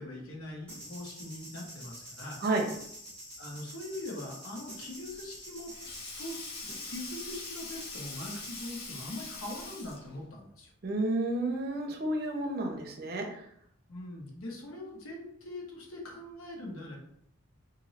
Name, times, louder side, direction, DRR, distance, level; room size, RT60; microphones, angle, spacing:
voice 1, 0.0-2.4 3.4-5.7 6.2-10.7 13.9-17.0, left 1 dB, 85° left, -1 dB, 1.1 m, -42 dB
sound 1, 0.7-8.8, equal, 5° left, 1.2 m, -47 dB
Sink (filling or washing), 5.0-10.2, left 3 dB, 50° left, 0.8 m, -43 dB
voice 2, 10.8-13.3, right 2 dB, 45° right, 2 dB, 0.6 m, -31 dB
3.1 x 2.6 x 4.1 m, 0.71 s
head